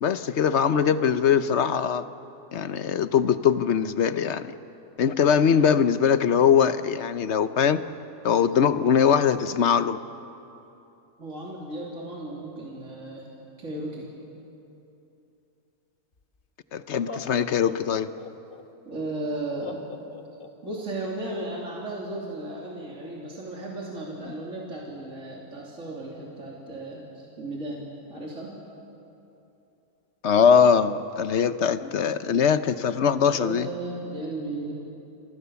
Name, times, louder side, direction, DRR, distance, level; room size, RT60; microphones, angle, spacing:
voice 1, 0.0-2.0 2.5-4.5 5.0-7.8 8.2-10.0 16.7-18.1 24.2-24.3 30.2-33.7, left 7 dB, 55° left, 12 dB, 1.1 m, -21 dB
voice 2, 11.2-13.3 13.6-14.1 18.9-19.8 20.6-28.6 33.3-34.7, right 2 dB, 60° right, -3 dB, 3.5 m, -35 dB
Laughter, 16.2-16.3 16.9-18.6 19.6-20.8, left 5 dB, 40° left, 1.5 m, -40 dB
30.0 x 24.5 x 7.0 m, 2.9 s
omnidirectional pair, 1.5 m